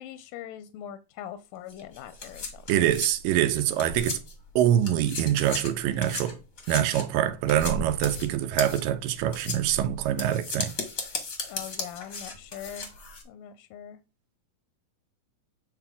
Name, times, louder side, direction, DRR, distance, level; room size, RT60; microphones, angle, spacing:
voice 1, 0.0-2.9 11.5-12.9 13.3-14.0, left 10 dB, 80° left, 2.1 m, -42 dB
sound 1, 1.7-4.5 4.8-13.2, left 3 dB, 50° left, 1.0 m, -36 dB
voice 2, 2.7-4.2 4.6-6.4 6.7-10.7, right 11 dB, 80° right, 2.3 m, -25 dB
9.0 x 4.7 x 3.7 m
omnidirectional pair, 4.0 m